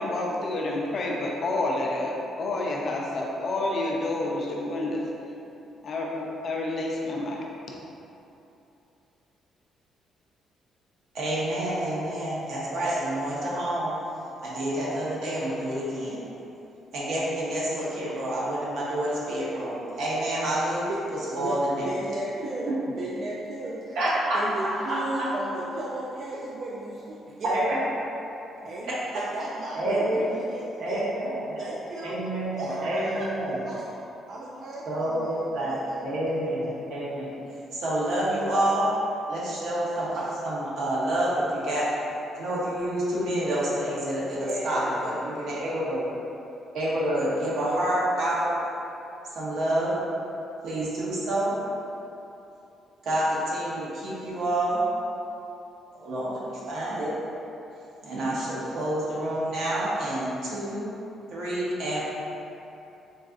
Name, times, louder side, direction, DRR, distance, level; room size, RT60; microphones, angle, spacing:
voice 1, 0.0-5.0 5.8-7.4, left 2 dB, 45° left, -2 dB, 0.4 m, -29 dB
voice 2, 11.1-13.9 14.4-16.2 16.9-20.8 21.3-21.9 22.7-22.8 23.9-25.2 27.4-27.8 29.1-29.2 29.7-30.2 30.8-31.6 32.0-33.6 34.9-37.3 37.7-38.9 39.3-41.8 42.3-46.1 46.7-48.5 49.3-49.9 50.6-51.5 53.0-54.8 55.9-57.1 58.0-60.9 61.3-62.0, right 1 dB, 70° right, -7 dB, 0.9 m, -28 dB
voice 3, 21.9-24.0 24.3-27.6 28.6-31.3 31.6-32.2 32.6-33.9 34.3-36.2 44.2-44.9, right 1 dB, 55° right, -5 dB, 0.3 m, -35 dB
3.9 x 2.5 x 2.4 m, 2.9 s
cardioid pair, 140°, 0 cm